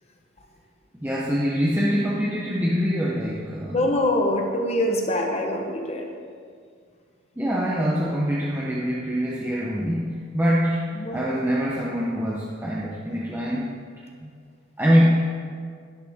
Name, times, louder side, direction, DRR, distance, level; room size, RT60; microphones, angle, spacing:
voice 1, 1.0-3.9 7.4-10.1 10.3-13.7 14.2-14.3 14.8-15.1, equal, 10° right, -5 dB, 0.7 m, -24 dB
voice 2, 3.7-6.1 10.9-11.2, left 1 dB, 30° left, 2 dB, 1.0 m, -24 dB
11.5 x 10.5 x 3.6 m, 2.1 s
head